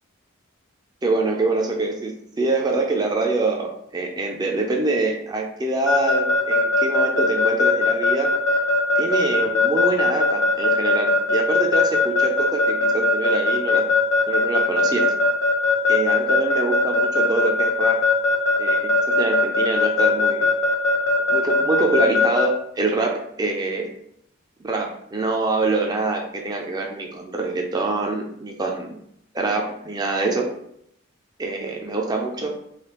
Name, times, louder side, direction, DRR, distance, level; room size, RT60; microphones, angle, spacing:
voice 1, 1.0-8.3 9.0-13.8 14.3-15.1 15.9-18.0 18.6-20.5 21.3-23.9 24.6-29.0 29.3-30.5 31.4-32.5, right 3 dB, 20° right, 1 dB, 0.4 m, -25 dB
Keyboard (musical) / Alarm, 5.9-22.5, left 3 dB, 65° left, 0.5 m, -19 dB
3.3 x 2.7 x 2.9 m, 0.73 s
head